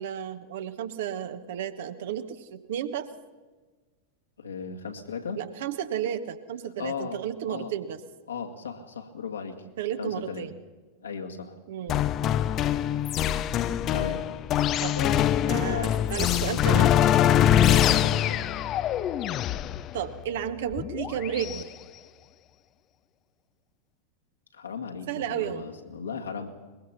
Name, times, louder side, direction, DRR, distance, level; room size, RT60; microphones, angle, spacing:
voice 1, 0.0-3.1 5.4-8.0 9.8-10.5 11.7-12.1 14.8-15.0 15.5-16.9 19.9-21.7 25.1-25.6, right 10 dB, 55° right, 10 dB, 1.2 m, -32 dB
voice 2, 4.4-5.4 6.8-7.2 7.5-7.7 8.3-9.6 10.0-10.5 11.0-11.6 13.9-14.2 15.0-15.2 15.6-15.9 16.6-18.4 24.5-26.5, left 6 dB, 70° left, 3 dB, 2.1 m, -36 dB
sound 1, 11.9-21.6, left 10 dB, 35° left, 0.6 m, -24 dB
22.5 x 21.5 x 5.8 m, 1.3 s
figure-of-eight pair, 90°, 0 cm